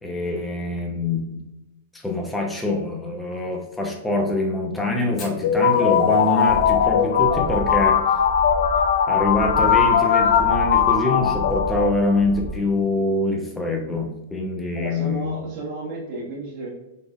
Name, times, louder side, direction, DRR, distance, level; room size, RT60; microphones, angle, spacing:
voice 1, 0.0-1.4 1.9-8.0 9.1-15.4, left 2 dB, 10° left, 1 dB, 0.8 m, -24 dB
Fire, 5.2-9.7 9.9-10.0 10.3-10.4 10.8-11.2 11.7-11.8 12.8-13.0, left 3 dB, 35° left, 1.5 m, -46 dB
sound 1, 5.4-12.2, left 8 dB, 65° left, 0.3 m, -19 dB
sound 2, 6.5-12.6, right 1 dB, 25° right, 0.4 m, -33 dB
voice 2, 14.7-16.7, right 2 dB, 45° right, -6 dB, 1.3 m, -32 dB
4.9 x 4.0 x 2.4 m, 0.96 s
hypercardioid pair, 105°, 0 cm